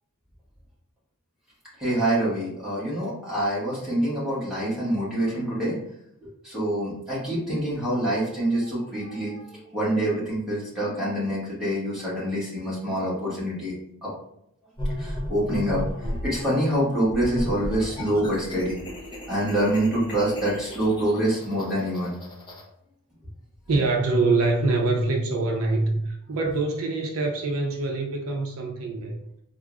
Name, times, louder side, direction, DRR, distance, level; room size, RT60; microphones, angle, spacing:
voice 1, 1.8-5.8 6.2-9.4 9.7-13.7 14.0-14.1 15.0-18.8 19.3-22.1, right 1 dB, 5° right, -9 dB, 1.2 m, -26 dB
sound 1, 14.8-16.4 17.1-22.6, equal, 20° left, 0.5 m, -34 dB
voice 2, 23.7-29.1, right 3 dB, 70° right, 1 dB, 0.5 m, -24 dB
4.4 x 2.0 x 2.3 m, 0.75 s
head